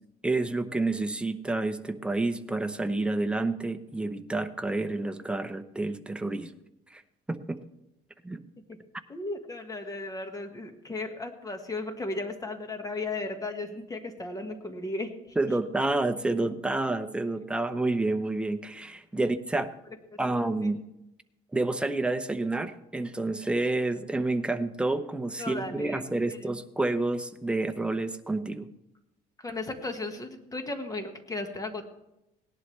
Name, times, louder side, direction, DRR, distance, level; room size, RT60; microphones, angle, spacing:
voice 1, 0.2-6.5 6.9-7.0 7.3-7.6 8.2-8.4 15.4-19.7 20.2-20.8 21.5-28.7, right 2 dB, 5° right, 7 dB, 0.8 m, -29 dB
voice 2, 9.1-15.6 19.2-19.3 19.6-19.7 20.3-20.7 25.4-26.0 26.3-26.5 29.4-31.9, left 2 dB, 20° left, 6 dB, 1.6 m, -36 dB
18.0 x 11.0 x 3.3 m, 0.89 s
cardioid pair, 110°, 17 cm